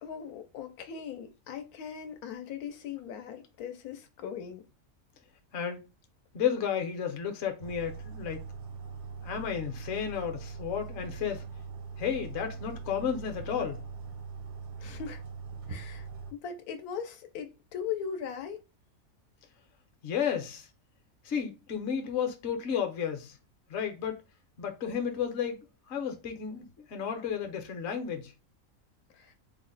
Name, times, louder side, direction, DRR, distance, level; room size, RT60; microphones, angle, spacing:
voice 1, 0.0-4.6 14.8-15.2 15.7-16.1 16.3-18.6 29.2-29.3, left 7 dB, 85° left, 1.1 m, -39 dB
voice 2, 6.3-8.4 9.2-11.4 12.0-13.8 20.0-20.7 21.2-23.4 23.7-24.2 24.6-25.6 25.9-28.3, left 8 dB, 55° left, 0.9 m, -32 dB
sound 1, 7.6-16.3, right 5 dB, 50° right, 0.6 m, -42 dB
3.3 x 2.1 x 3.9 m
omnidirectional pair, 1.5 m